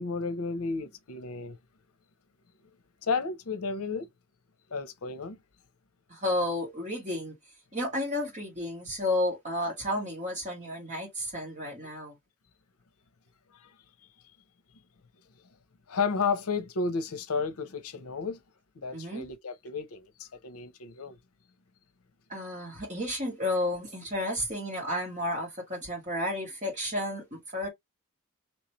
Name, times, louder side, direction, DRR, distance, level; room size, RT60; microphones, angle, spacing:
voice 1, 0.0-1.6 3.0-4.1 4.7-5.4 13.6-13.7 15.9-18.4 18.8-21.2, left 4 dB, 75° left, 0.7 m, -32 dB
voice 2, 6.1-7.4 7.7-12.2 18.9-19.3 22.3-27.7, left 1 dB, 30° right, 1.9 m, -32 dB
3.1 x 3.1 x 3.0 m
head